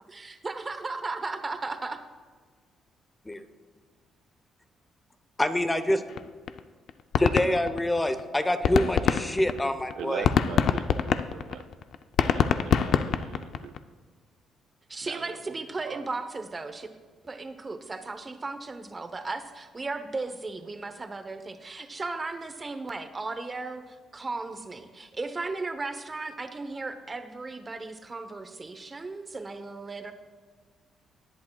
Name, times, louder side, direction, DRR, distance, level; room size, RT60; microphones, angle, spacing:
voice 1, 0.1-2.0 14.9-16.9 17.2-30.1, right 3 dB, 25° right, 8 dB, 0.9 m, -36 dB
voice 2, 5.4-6.0 7.2-10.3, left 1 dB, 15° left, 10 dB, 0.7 m, -26 dB
sound 1, 6.2-6.3 6.5-6.6 6.9-8.2 8.5-13.8, left 7 dB, 70° left, 0.4 m, -24 dB
voice 3, 10.0-11.7 12.2-13.7 15.0-15.5 15.8-16.0, right 8 dB, 80° right, 9 dB, 0.5 m, -41 dB
18.5 x 8.5 x 2.3 m, 1.5 s
cardioid pair, 90°, 0 cm